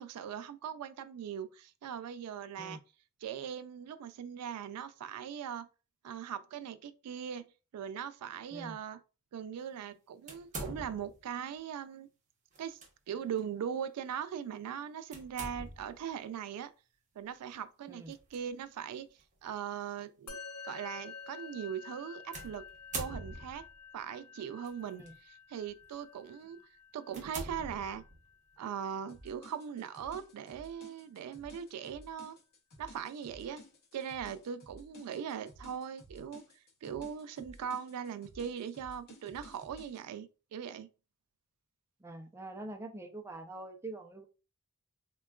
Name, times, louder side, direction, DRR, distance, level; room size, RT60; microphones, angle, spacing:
voice 1, 0.0-2.8 3.2-5.7 6.0-7.5 7.7-9.0 9.3-12.1 12.6-12.8 13.1-16.7 17.2-19.1 19.4-20.4 20.6-22.7 22.9-23.6 23.9-25.0 25.5-26.6 26.9-28.0 28.6-32.4 32.8-33.6 33.9-36.4 36.8-40.9, right 8 dB, 90° right, 0.3 m, -40 dB
sound 1, 10.3-11.3 12.5-12.9 13.4-13.5 15.1-16.0 18.1-18.4 19.2-19.3 22.3-23.7 24.6-25.1 25.7-25.9 26.4-26.5 27.1-28.3, right 2 dB, 35° right, 0.7 m, -43 dB
Musical instrument, 20.3-29.8, left 5 dB, 80° left, 0.6 m, -51 dB
sound 2, 29.1-40.0, left 1 dB, 45° left, 0.7 m, -55 dB
voice 2, 42.0-44.2, right 2 dB, 10° right, 0.4 m, -44 dB
3.5 x 2.2 x 2.3 m
head